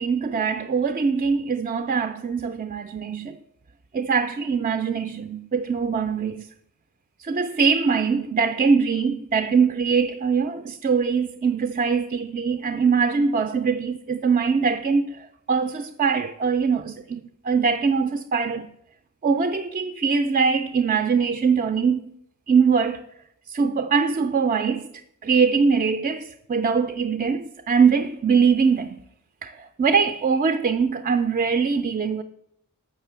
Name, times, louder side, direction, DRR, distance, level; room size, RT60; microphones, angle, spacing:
voice 1, 0.0-3.4 3.9-6.5 7.2-18.7 19.2-22.0 22.5-23.0 23.5-24.9 25.2-29.0 29.4-32.2, right 5 dB, 35° right, 0.3 m, -22 dB
7.3 x 5.9 x 6.8 m
head